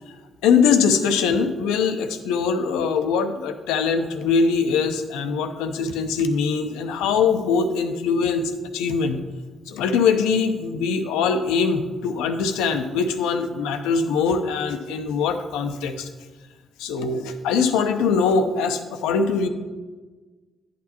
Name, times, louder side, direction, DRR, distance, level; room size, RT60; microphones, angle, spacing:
voice 1, 0.4-9.2 9.7-16.1 16.8-19.5, left 5 dB, 85° left, 7 dB, 0.6 m, -22 dB
11.0 x 8.5 x 2.9 m, 1.3 s
hypercardioid pair, 50°, 0 cm